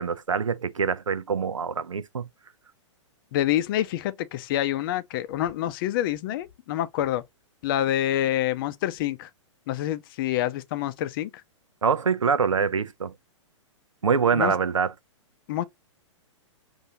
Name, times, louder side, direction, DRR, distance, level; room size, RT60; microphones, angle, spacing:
voice 1, 0.0-2.3 11.8-13.1 14.0-14.9, right 6 dB, 90° right, 0.6 m, -24 dB
voice 2, 3.3-7.2 7.6-9.3 9.7-11.3 14.3-14.5 15.5-15.6, left 12 dB, 45° left, 0.5 m, -27 dB
5.4 x 2.6 x 2.8 m
hypercardioid pair, 115°, 16 cm